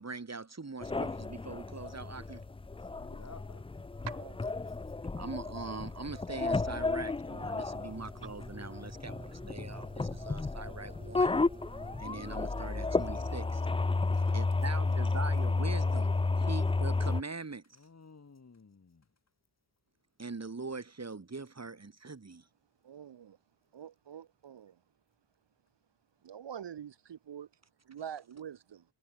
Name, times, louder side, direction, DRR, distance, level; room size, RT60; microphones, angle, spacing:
voice 1, 0.0-2.4 5.1-11.4 12.0-13.6 14.3-17.6 20.2-22.4, right 4 dB, 35° right, 3.1 m, -42 dB
sound 1, 0.8-17.2, left 3 dB, 15° left, 0.4 m, -32 dB
voice 2, 3.0-3.7 14.1-14.5 17.7-19.0, left 4 dB, 35° left, 1.9 m, -54 dB
voice 3, 4.1-4.4 22.8-23.4 23.7-24.8 26.2-27.5 27.9-28.8, right 9 dB, 70° right, 1.0 m, -45 dB
sound 2, 7.3-14.2, right 1 dB, 15° right, 5.6 m, -51 dB
wide cardioid pair, 110°, 45 cm